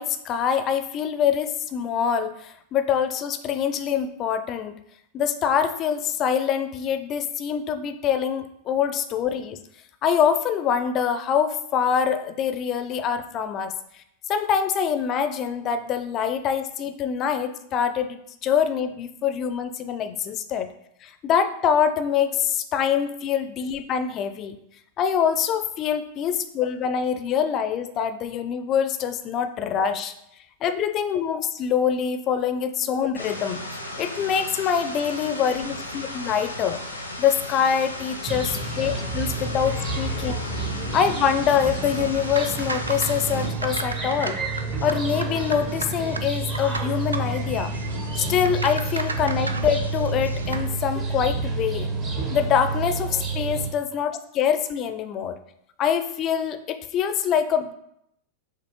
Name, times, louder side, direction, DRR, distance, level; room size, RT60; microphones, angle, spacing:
voice 1, 0.0-4.8 5.1-9.6 10.0-13.7 14.3-20.7 21.0-24.6 25.0-30.1 30.6-33.6 34.0-36.8 37.2-38.4 38.8-40.4 40.9-44.4 44.8-47.7 48.2-51.9 52.3-55.4 55.8-57.7, left 8 dB, 35° left, 9 dB, 0.4 m, -24 dB
sound 1, 33.1-43.5, left 1 dB, 85° left, 0.5 m, -35 dB
sound 2, 38.3-53.7, right 3 dB, 35° right, 0.9 m, -29 dB
sound 3, 41.9-50.7, right 3 dB, 80° right, 0.3 m, -36 dB
6.3 x 2.5 x 3.0 m, 0.77 s
figure-of-eight pair, 90°, 0 cm